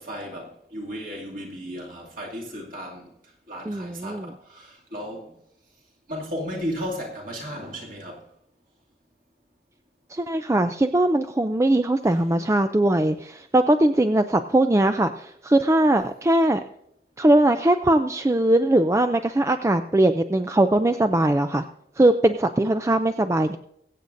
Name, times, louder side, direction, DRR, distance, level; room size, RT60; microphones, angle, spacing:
voice 1, 0.0-3.1 3.5-5.4 6.1-8.2 12.1-12.2, equal, 50° right, 2.4 m, -35 dB
voice 2, 3.7-4.3 10.1-16.6 17.2-21.7 22.0-23.6, right 1 dB, 15° right, 0.3 m, -20 dB
23.0 x 8.3 x 2.6 m
head